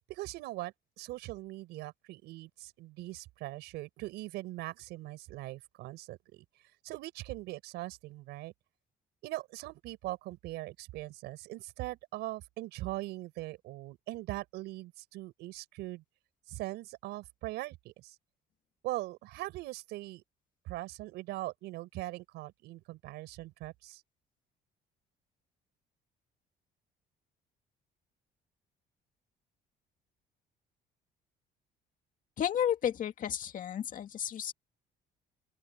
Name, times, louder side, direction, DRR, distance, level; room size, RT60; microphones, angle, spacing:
voice 1, 0.1-6.4 6.8-8.5 9.2-16.0 16.5-18.2 18.8-20.2 20.7-24.0, right 18 dB, 85° right, 5.7 m, -41 dB
voice 2, 32.4-34.5, left 9 dB, 50° left, 2.3 m, -32 dB
open air
cardioid pair, 110°, 17 cm